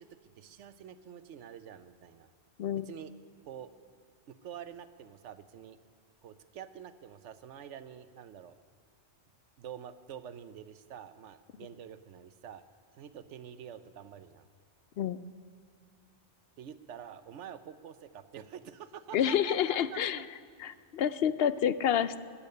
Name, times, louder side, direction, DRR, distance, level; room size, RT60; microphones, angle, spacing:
voice 1, 0.0-2.3 2.8-3.1 3.4-3.7 4.3-5.8 6.2-8.6 9.6-12.6 13.0-14.5 16.6-20.2, right 9 dB, 85° right, 12 dB, 1.0 m, -47 dB
voice 2, 19.1-20.2 20.6-22.2, left 9 dB, 65° left, 14 dB, 0.8 m, -28 dB
20.5 x 8.5 x 6.7 m, 2.3 s
omnidirectional pair, 1.2 m